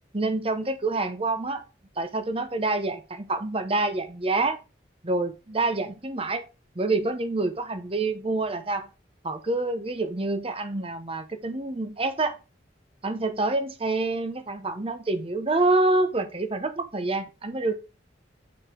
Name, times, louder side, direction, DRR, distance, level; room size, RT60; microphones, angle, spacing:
voice 1, 0.1-1.6 2.0-4.6 5.0-6.4 6.8-8.9 9.2-12.4 13.0-17.7, right 2 dB, 30° right, 0.9 m, -27 dB
8.7 x 4.8 x 3.8 m
head